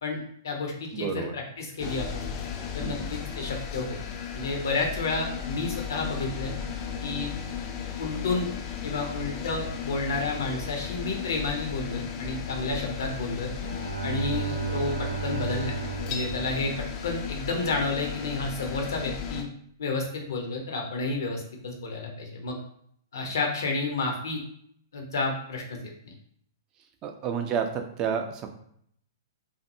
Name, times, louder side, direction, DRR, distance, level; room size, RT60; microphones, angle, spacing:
voice 1, 0.0-2.3 2.7-4.0 4.3-6.5 7.0-7.3 8.0-8.5 8.8-13.5 14.0-15.8 16.1-19.4 19.8-22.6 23.1-24.4 24.9-25.8 26.0-26.1, left 3 dB, 65° left, 1 dB, 0.7 m, -31 dB
voice 2, 0.9-1.3 2.8-3.1 27.0-28.5, right 7 dB, 30° right, 5 dB, 0.4 m, -30 dB
sound 1, 1.8-19.4, left 7 dB, 35° left, 0.4 m, -35 dB
Bowed string instrument, 13.4-17.5, right 6 dB, 65° right, 0.7 m, -34 dB
2.6 x 2.5 x 2.6 m, 0.66 s
figure-of-eight pair, 115°, 2 cm